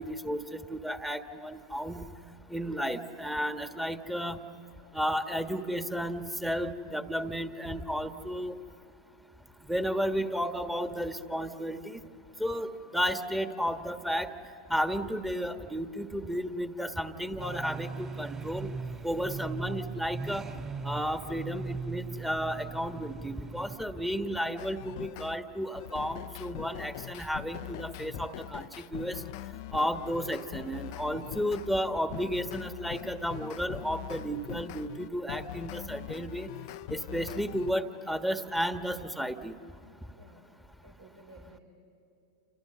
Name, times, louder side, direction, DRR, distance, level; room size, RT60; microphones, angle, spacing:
voice 1, 0.0-2.0 2.5-4.4 4.9-8.6 9.7-12.0 12.4-14.3 14.7-18.7 19.0-20.5 20.8-29.2 29.7-36.5 36.9-39.5, equal, 5° right, 7 dB, 1.6 m, -33 dB
sound 1, 17.4-23.8, right 4 dB, 25° right, 3.0 m, -39 dB
sound 2, 24.6-25.4 25.7-31.7 32.1-37.7, left 17 dB, 60° left, 0.5 m, -42 dB
voice 2, 40.1-40.5 40.8-41.6, right 1 dB, 80° right, 1 dB, 4.9 m, -54 dB
29.5 x 28.5 x 6.9 m, 2.9 s
hypercardioid pair, 90°, 2 cm